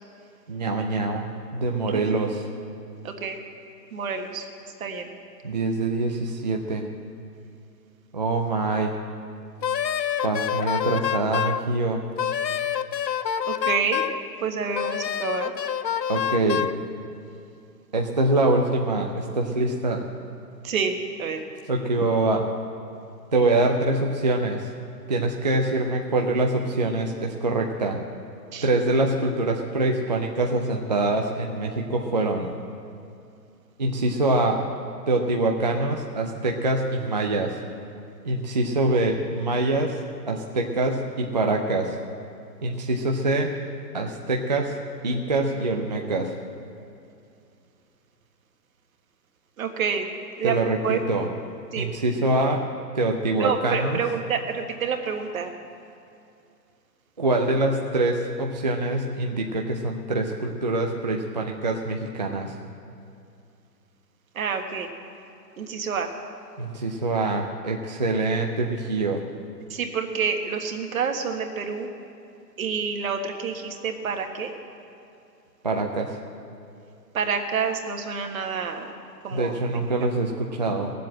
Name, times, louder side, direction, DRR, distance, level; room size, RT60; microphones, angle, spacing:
voice 1, 0.5-1.2 1.5-2.5 5.4-6.8 8.1-8.9 10.2-12.0 16.1-16.7 17.9-20.0 21.7-22.4 23.3-24.7 25.1-28.0 28.6-32.5 33.8-34.6 35.1-37.6 38.2-40.0 40.3-42.0 42.6-43.5 43.9-44.8 45.0-46.3 50.4-51.3 51.8-52.6 52.9-54.0 57.2-62.5 66.6-69.2 75.6-76.2 79.3-80.9, right 2 dB, 30° right, 1 dB, 0.4 m, -24 dB
voice 2, 3.0-3.4 3.9-4.5 4.8-5.1 13.4-14.0 14.4-15.5 20.6-21.4 28.5-28.7 49.6-50.1 50.4-50.6 50.8-51.0 51.7-51.9 53.4-55.5 64.3-64.9 65.6-66.1 69.7-71.9 72.6-74.5 77.1-78.9 79.2-79.6, right 6 dB, 55° right, 5 dB, 1.6 m, -28 dB
Wind instrument woodwind instrument, 9.6-11.6 12.2-14.2 14.7-16.8, left 9 dB, 90° left, 0.7 m, -27 dB
17.5 x 7.7 x 7.6 m, 2.6 s
hypercardioid pair, 145°, 50 cm